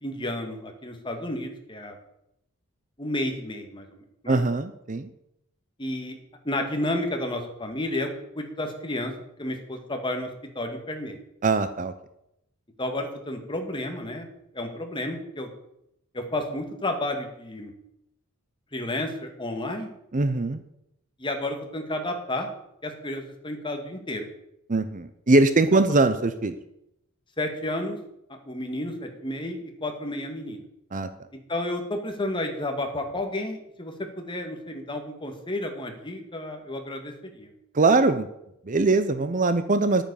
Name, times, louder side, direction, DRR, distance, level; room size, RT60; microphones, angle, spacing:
voice 1, 0.0-2.0 3.0-4.4 5.8-6.2 6.4-8.1 8.4-9.1 9.4-10.3 10.6-11.2 12.8-14.3 14.5-15.5 16.1-17.7 18.7-19.9 21.2-22.5 22.8-24.3 25.7-25.8 27.4-28.0 28.3-30.6 31.5-37.5, left 1 dB, 20° left, 4 dB, 2.0 m, -31 dB
voice 2, 4.3-5.1 11.4-11.9 20.1-20.6 24.7-26.5 30.9-31.1 37.7-38.3 38.7-40.0, right 3 dB, 35° right, 11 dB, 0.7 m, -22 dB
11.0 x 8.9 x 7.0 m, 0.81 s
head